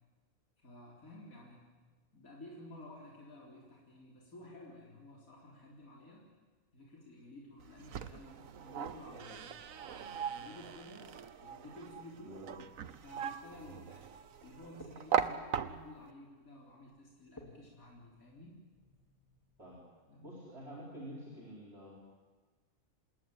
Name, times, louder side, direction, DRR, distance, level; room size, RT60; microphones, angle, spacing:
voice 1, 0.6-1.7 2.1-6.2 6.7-9.5 9.9-12.3 13.0-14.1 14.4-18.6 20.1-20.3, left 1 dB, 75° left, -3 dB, 4.4 m, -53 dB
sound 1, 7.6-16.1, right 8 dB, 70° right, 1.4 m, -39 dB
sound 2, 16.7-19.8, left 1 dB, 15° left, 3.4 m, -60 dB
voice 2, 20.2-22.0, equal, 45° right, -4 dB, 5.0 m, -48 dB
27.0 x 20.5 x 9.1 m, 1.3 s
omnidirectional pair, 1.5 m